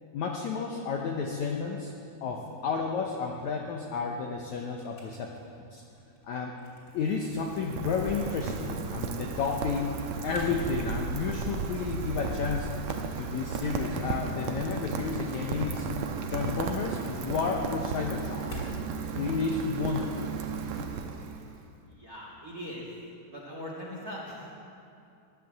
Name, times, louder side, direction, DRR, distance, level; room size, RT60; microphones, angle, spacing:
voice 1, 0.1-1.9 2.2-5.3 5.7-5.8 6.3-6.5 6.9-9.9 10.2-12.7 13.2-15.9 16.3-18.5 19.1-20.4, left 5 dB, 75° left, 1 dB, 1.7 m, -31 dB
sound 1, 4.3-19.2, left 2 dB, 30° left, 3.1 m, -51 dB
Rain, 6.8-21.6, right 5 dB, 75° right, 1.6 m, -35 dB
voice 2, 21.9-22.9 23.3-24.7, equal, 30° right, -3 dB, 1.8 m, -40 dB
14.5 x 11.0 x 7.6 m, 2.6 s
omnidirectional pair, 4.5 m